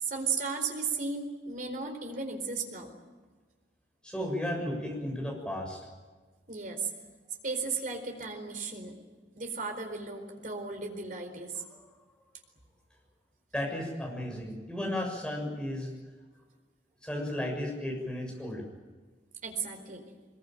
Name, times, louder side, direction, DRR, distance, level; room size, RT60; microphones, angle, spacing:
voice 1, 0.0-2.9 6.5-6.9 7.4-9.0 9.4-11.5 19.4-20.1, right 4 dB, 50° right, 4 dB, 4.3 m, -35 dB
voice 2, 4.0-5.8 11.7-11.8 13.5-15.9 17.0-18.6, left 1 dB, 5° left, 0 dB, 6.9 m, -34 dB
22.5 x 22.0 x 9.2 m, 1.3 s
head